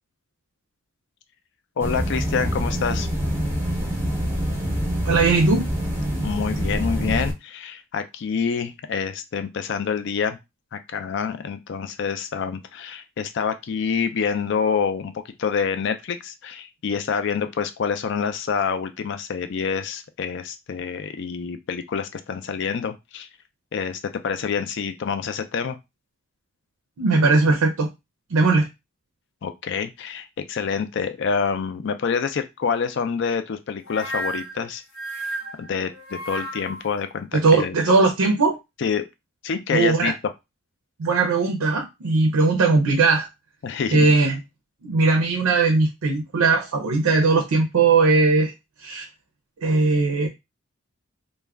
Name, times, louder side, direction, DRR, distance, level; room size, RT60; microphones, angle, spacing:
voice 1, 1.8-3.1 6.2-10.4 10.7-23.3 23.7-25.8 29.4-34.8 35.6-37.8 38.8-39.0 39.4-40.1 43.6-44.1, left 6 dB, 55° left, 9 dB, 0.4 m, -27 dB
sound 1, 1.8-7.3, equal, 10° right, 0.6 m, -25 dB
voice 2, 5.0-5.6 27.0-27.9 28.3-28.7 37.3-38.6 39.7-40.1 41.0-43.3 43.9-44.4 44.8-48.5 48.8-49.1 49.6-50.3, right 3 dB, 85° right, 3 dB, 0.5 m, -19 dB
sound 2, 33.9-37.0, right 1 dB, 75° left, 0.7 m, -33 dB
2.3 x 2.1 x 3.3 m, 0.22 s
head